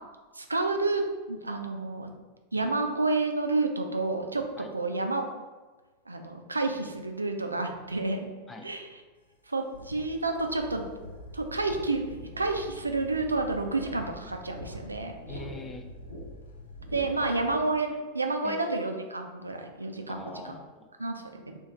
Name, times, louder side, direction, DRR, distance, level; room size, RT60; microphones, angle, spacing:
voice 1, 0.3-2.1 2.5-4.4 4.7-5.2 6.1-8.3 8.6-8.9 9.5-10.9 11.3-15.4 16.9-20.3 21.0-21.6, right 3 dB, 80° right, 4 dB, 0.3 m, -30 dB
sound 1, 9.2-17.6, left 2 dB, 65° left, 0.6 m, -50 dB
sound 2, 9.7-17.4, equal, 85° left, 0.9 m, -45 dB
voice 2, 15.3-15.9 17.2-17.4 18.4-18.8 20.1-20.9, left 3 dB, 15° left, 4 dB, 0.4 m, -43 dB
3.1 x 2.5 x 3.5 m, 1.3 s
figure-of-eight pair, 90°, 0 cm